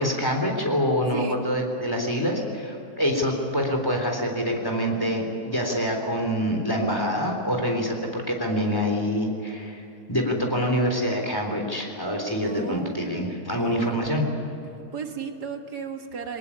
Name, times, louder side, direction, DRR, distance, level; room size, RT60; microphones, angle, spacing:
voice 1, 0.0-9.8 10.1-14.2, equal, 15° left, 2 dB, 3.6 m, -26 dB
voice 2, 1.1-1.5 12.4-14.1 14.9-16.4, right 6 dB, 75° right, 4 dB, 2.2 m, -35 dB
23.5 x 19.0 x 8.7 m, 2.8 s
omnidirectional pair, 1.8 m